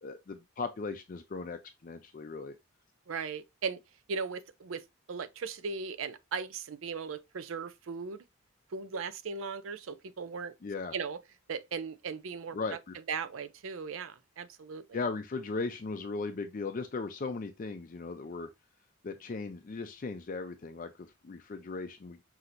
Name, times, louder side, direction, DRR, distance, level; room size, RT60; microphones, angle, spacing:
voice 1, 0.0-2.5 10.6-11.0 12.5-12.9 14.9-18.5 19.0-22.2, left 4 dB, 40° left, 0.4 m, -37 dB
voice 2, 3.1-3.8 4.1-8.2 8.7-10.5 10.9-11.2 11.5-12.8 13.1-15.0, right 5 dB, 75° right, 0.5 m, -38 dB
5.9 x 2.8 x 2.5 m
head